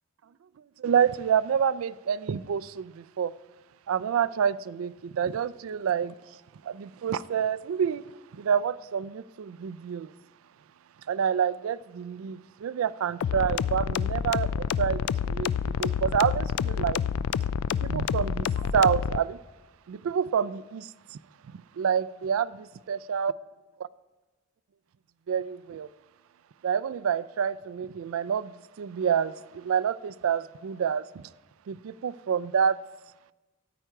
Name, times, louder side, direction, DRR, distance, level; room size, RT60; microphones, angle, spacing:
voice 1, 0.8-3.3 3.9-6.1 6.6-8.0 8.3-10.1 11.1-17.0 17.7-19.4 19.9-21.2 21.7-23.3 25.3-25.9 26.6-31.2 31.7-32.8, right 7 dB, 80° right, 0.4 m, -28 dB
sound 1, 13.2-19.2, left 7 dB, 80° left, 0.3 m, -28 dB
13.5 x 8.9 x 4.6 m
head